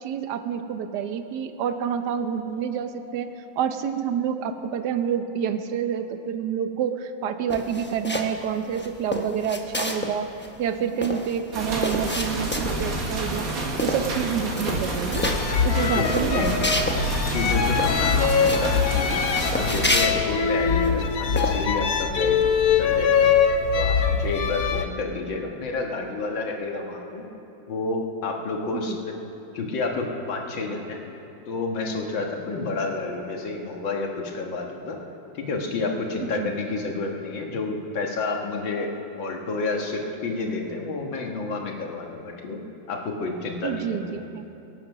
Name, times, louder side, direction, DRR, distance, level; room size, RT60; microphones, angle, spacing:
voice 1, 0.0-10.3 10.6-13.5 13.8-15.3 15.6-16.7 16.9-17.0 28.7-29.0 36.2-36.5 43.6-44.5, right 8 dB, 65° right, 9 dB, 1.3 m, -28 dB
sound 1, 7.5-8.4 8.7-10.1 10.4-10.5 10.7-12.9 13.3-13.5 13.8-14.2 14.5-15.4 15.8-17.0 17.3-17.4 17.8-18.7 19.2-20.9 21.4-21.6, left 1 dB, 15° left, 0.3 m, -29 dB
sound 2, 11.5-19.9, right 2 dB, 50° right, 2.0 m, -29 dB
sound 3, 15.1-24.8, left 6 dB, 60° left, 1.1 m, -23 dB
voice 2, 15.9-16.5 17.2-19.2 19.5-23.3 23.7-27.2 27.7-29.1 29.5-31.0 31.5-35.0 35.3-42.6 42.9-44.3, left 3 dB, 75° left, 1 dB, 2.3 m, -30 dB
23.5 x 8.8 x 6.0 m, 2.9 s
omnidirectional pair, 2.1 m